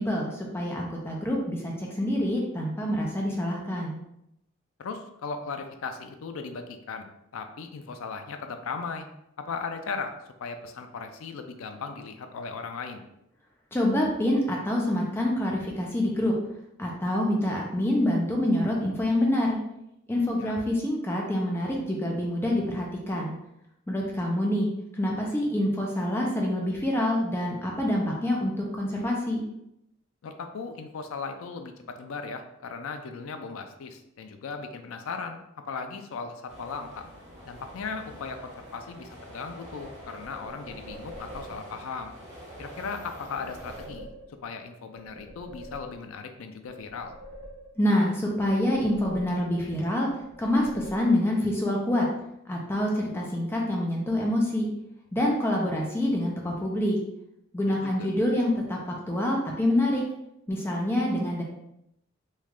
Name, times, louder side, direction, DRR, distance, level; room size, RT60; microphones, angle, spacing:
voice 1, 0.0-4.0 13.7-16.3 16.8-19.6 20.1-23.3 23.9-29.4 47.8-52.1 52.5-54.7 55.1-57.0 57.5-58.8 59.1-60.0 60.5-61.4, left 1 dB, 10° left, -2 dB, 0.4 m, -26 dB
voice 2, 4.8-7.1 7.3-9.1 9.4-10.1 10.4-13.0 20.4-20.5 30.2-37.0 37.5-42.1 42.6-44.1 44.4-47.1 57.6-58.1, left 5 dB, 85° left, 6 dB, 0.4 m, -37 dB
sound 1, 36.5-43.8, equal, 35° right, 1.3 m, -46 dB
sound 2, 39.8-41.8 43.2-44.6 44.9-46.3 46.6-48.0 48.4-49.7 50.1-51.4, right 1 dB, 85° right, 1.0 m, -46 dB
3.1 x 2.4 x 3.5 m, 0.81 s
head